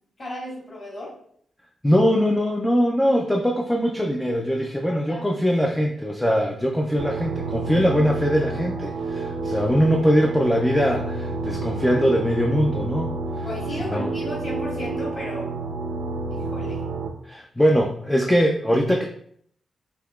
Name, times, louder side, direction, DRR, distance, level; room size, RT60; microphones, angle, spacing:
voice 1, 0.2-1.1 4.9-5.2 13.4-15.5 16.3-16.8, equal, 40° left, -5 dB, 1.6 m, -34 dB
voice 2, 1.8-13.5 13.8-14.1 17.2-19.0, equal, 5° left, 1 dB, 0.3 m, -22 dB
sound 1, 7.0-17.1, right 3 dB, 85° right, 0.5 m, -29 dB
5.7 x 2.8 x 2.3 m, 0.65 s
wide cardioid pair, 180°, 0 cm